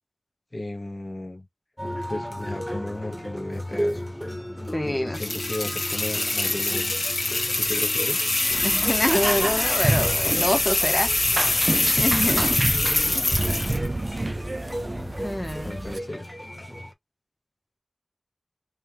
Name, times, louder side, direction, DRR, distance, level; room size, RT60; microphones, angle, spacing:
voice 1, 0.5-1.5 2.1-4.2 4.8-6.9 7.6-8.4 11.4-11.6 15.2-15.3 15.6-16.3, left 1 dB, 40° left, 1.1 m, -35 dB
sound 1, 1.8-16.9, equal, ahead, 1.2 m, -35 dB
voice 2, 4.7-5.2 8.6-11.1 12.0-12.6 13.1-13.2 15.2-15.7, left 1 dB, 25° left, 1.2 m, -26 dB
sound 2, 5.1-13.9, left 2 dB, 75° left, 1.6 m, -24 dB
sound 3, 8.5-16.0, right 2 dB, 45° right, 0.3 m, -29 dB
3.2 x 3.0 x 3.4 m
wide cardioid pair, 40°, 0 cm